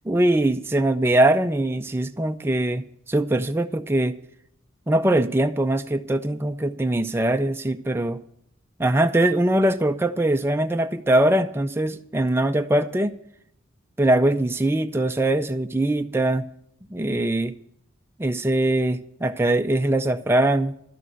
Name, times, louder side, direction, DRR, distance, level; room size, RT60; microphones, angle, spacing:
voice 1, 0.1-4.1 4.9-8.2 8.8-13.2 14.0-16.4 16.9-17.5 18.2-20.7, right 1 dB, 10° right, 7 dB, 0.4 m, -22 dB
12.0 x 6.3 x 9.0 m, 0.71 s
head